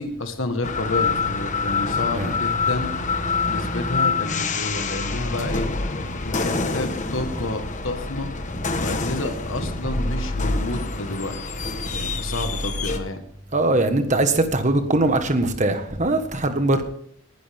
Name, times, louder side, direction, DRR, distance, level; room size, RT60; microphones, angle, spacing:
voice 1, 0.0-2.9 3.5-5.7 6.1-8.3 8.8-11.5 11.9-13.2, left 2 dB, 60° left, 1.5 m, -30 dB
sound 1, 0.6-13.0, left 4 dB, 35° left, 1.2 m, -26 dB
voice 2, 13.5-16.8, right 2 dB, 35° right, 1.4 m, -21 dB
19.5 x 11.5 x 3.6 m
head